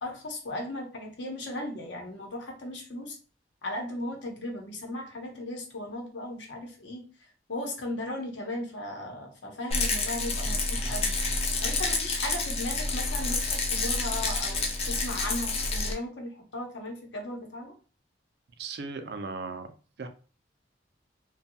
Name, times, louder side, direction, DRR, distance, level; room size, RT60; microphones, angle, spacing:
voice 1, 0.0-3.2 3.6-7.0 7.5-11.2 11.6-17.7, left 1 dB, 85° left, 1 dB, 0.8 m, -36 dB
Rattle, 9.7-15.9, left 3 dB, 35° left, 0.4 m, -29 dB
voice 2, 18.6-20.1, right 4 dB, 60° right, 7 dB, 0.4 m, -37 dB
2.6 x 2.2 x 2.7 m, 0.37 s
head